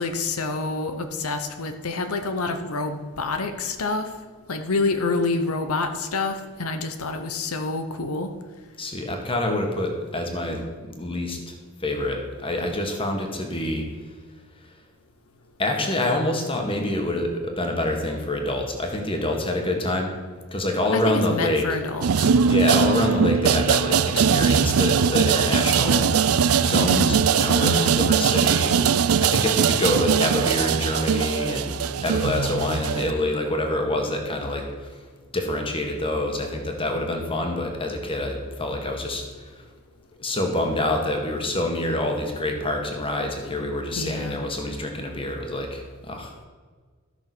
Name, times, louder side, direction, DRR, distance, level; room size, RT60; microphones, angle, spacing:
voice 1, 0.0-4.1 4.5-8.3 20.9-22.3 26.7-27.2 27.6-28.0 44.0-44.4, left 3 dB, 85° left, 7 dB, 0.9 m, -27 dB
voice 2, 8.8-10.6 11.0-11.6 11.8-13.9 15.6-20.1 20.5-21.7 22.5-34.9 35.3-39.6 40.2-46.3, left 1 dB, 25° left, 3 dB, 1.7 m, -26 dB
sound 1, 22.0-33.1, right 7 dB, 80° right, 0.5 m, -21 dB
14.0 x 6.3 x 6.1 m, 1.5 s
head